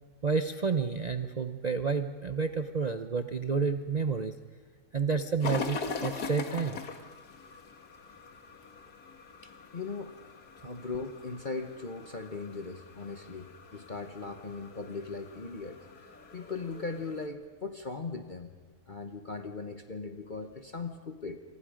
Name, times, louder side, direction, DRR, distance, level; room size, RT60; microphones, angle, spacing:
voice 1, 0.2-4.3 4.9-6.8, right 5 dB, 40° right, 8 dB, 0.7 m, -30 dB
sound 1, 5.4-17.3, left 4 dB, 80° left, 2.1 m, -42 dB
voice 2, 9.4-10.1 10.6-18.5 18.9-21.4, left 4 dB, 35° left, 6 dB, 1.2 m, -39 dB
28.5 x 24.5 x 5.1 m, 1.4 s
omnidirectional pair, 1.6 m